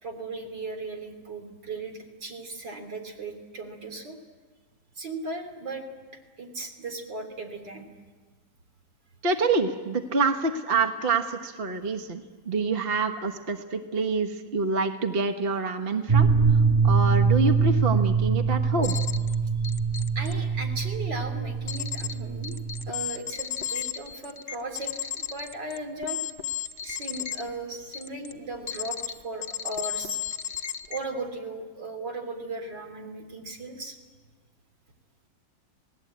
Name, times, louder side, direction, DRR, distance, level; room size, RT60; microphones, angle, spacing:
voice 1, 0.0-4.2 5.0-5.8 6.4-7.8 20.2-22.6 22.9-26.2 26.8-30.2 30.9-34.0, right 2 dB, 65° right, 4 dB, 3.6 m, -37 dB
voice 2, 9.2-16.3 16.8-18.9, right 4 dB, 35° right, 6 dB, 1.3 m, -27 dB
sound 1, 16.1-22.9, right 5 dB, 10° right, 2.3 m, -23 dB
sound 2, 18.8-19.3 19.6-20.3 21.7-22.1 22.4-27.4 27.9-28.3 28.7-29.1 29.4-31.0, left 10 dB, 45° left, 0.6 m, -33 dB
28.5 x 19.0 x 8.6 m, 1.4 s
omnidirectional pair, 2.0 m